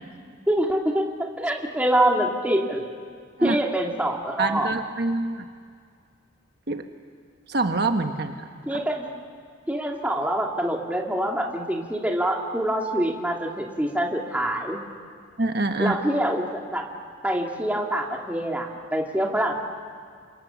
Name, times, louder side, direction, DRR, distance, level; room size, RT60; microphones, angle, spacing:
voice 1, 0.5-1.1 1.4-2.9 3.4-4.7 8.7-9.1 9.7-14.8 15.8-16.4 16.7-16.8 17.2-19.5, right 1 dB, 10° right, 0 dB, 2.5 m, -25 dB
voice 2, 4.4-5.4 6.7-6.9 7.5-8.8 15.4-16.0, right 3 dB, 55° right, 6 dB, 1.2 m, -26 dB
28.5 x 26.5 x 7.2 m, 2.1 s
head